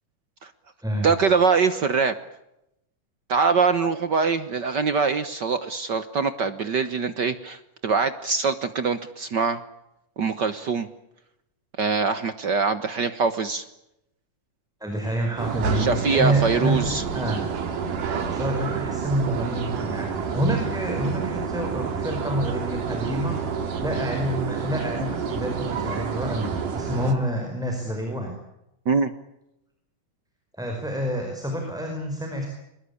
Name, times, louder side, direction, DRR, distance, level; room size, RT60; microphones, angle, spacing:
voice 1, 1.0-2.1 3.3-9.6 10.2-10.9 11.8-13.6 15.7-17.0 28.8-29.1, right 5 dB, 65° right, 12 dB, 1.1 m, -23 dB
voice 2, 14.8-17.4 18.3-23.4 23.8-28.3 30.6-32.5, right 1 dB, ahead, 2 dB, 4.9 m, -27 dB
sound 1, 15.4-27.1, right 6 dB, 85° right, 4.1 m, -29 dB
23.5 x 21.5 x 8.5 m, 0.85 s
omnidirectional pair, 3.6 m